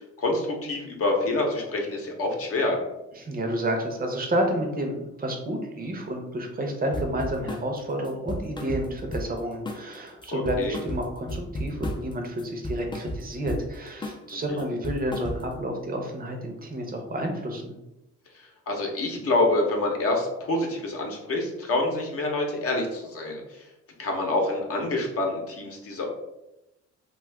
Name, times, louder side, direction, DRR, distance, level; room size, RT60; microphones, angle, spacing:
voice 1, 0.2-2.8 10.3-10.8 14.3-14.6 18.7-23.4 24.0-26.1, left 2 dB, 50° left, 0 dB, 0.8 m, -27 dB
voice 2, 3.1-17.8, right 1 dB, 30° right, 3 dB, 0.7 m, -30 dB
sound 1, 6.9-7.7 8.0-9.4 9.7-9.9 10.2-12.1 12.4-13.7 14.0-14.3 14.6-15.6, equal, 15° left, 0.4 m, -33 dB
2.4 x 2.4 x 3.4 m, 0.93 s
cardioid pair, 90°, 30 cm